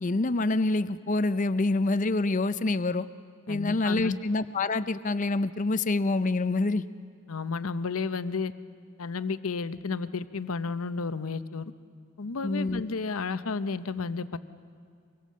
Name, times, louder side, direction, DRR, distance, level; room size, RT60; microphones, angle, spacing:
voice 1, 0.0-3.1 3.5-6.8 12.4-12.8, left 2 dB, 35° left, 13 dB, 0.5 m, -26 dB
voice 2, 3.5-4.2 7.3-8.5 9.0-11.7 12.2-14.4, left 4 dB, 75° left, 13 dB, 0.7 m, -32 dB
24.5 x 22.5 x 7.5 m, 2.2 s
head